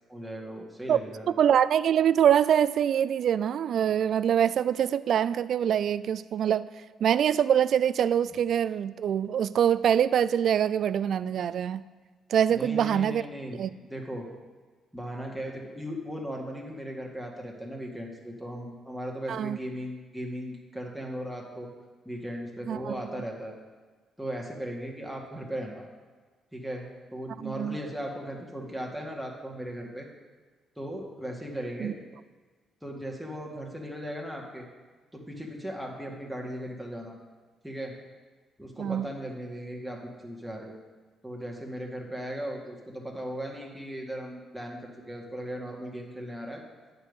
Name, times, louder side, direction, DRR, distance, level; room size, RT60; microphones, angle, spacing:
voice 1, 0.1-1.3 12.5-13.6 13.9-14.3 14.9-21.7 22.1-23.5 24.2-25.9 26.5-26.8 27.1-30.1 30.8-32.0 32.8-34.7 35.1-37.2 37.6-37.9 38.6-40.7 41.2-46.6, equal, ahead, -1 dB, 2.1 m, -37 dB
voice 2, 1.4-6.7 7.0-11.8 12.3-13.2 13.6-13.7 19.3-19.6 22.7-23.0 27.4-27.8 31.8-31.9 38.8-39.1, right 9 dB, 65° right, 15 dB, 0.3 m, -24 dB
9.5 x 5.4 x 8.2 m, 1.4 s
cardioid pair, 90°, 0 cm